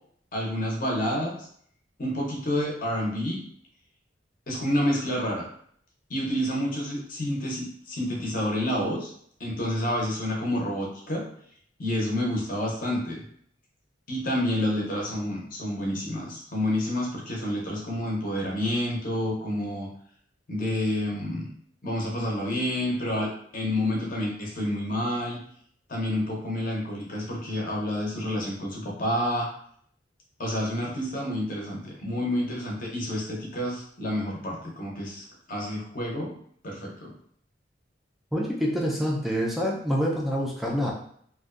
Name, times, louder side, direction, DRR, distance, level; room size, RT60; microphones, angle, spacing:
voice 1, 0.3-1.4 2.0-3.4 4.5-5.4 6.1-9.1 9.4-11.2 11.8-13.2 14.1-19.9 20.5-21.5 21.8-25.4 25.9-29.5 30.4-36.3 36.6-37.1, left 1 dB, 45° left, -2 dB, 0.7 m, -29 dB
voice 2, 38.3-40.9, equal, ahead, -3 dB, 0.3 m, -26 dB
2.5 x 2.2 x 2.4 m, 0.63 s
head